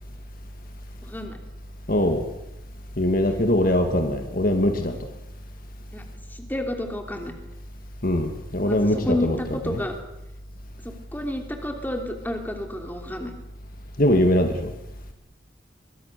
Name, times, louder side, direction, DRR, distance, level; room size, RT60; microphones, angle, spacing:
voice 1, 1.0-1.4 5.9-6.0 6.3-7.3 8.6-9.9 10.8-13.3, left 1 dB, 10° left, 2.9 m, -30 dB
voice 2, 1.9-2.3 3.0-4.9 8.0-9.8 14.0-14.7, left 1 dB, 50° left, 1.9 m, -22 dB
23.5 x 22.5 x 6.7 m
head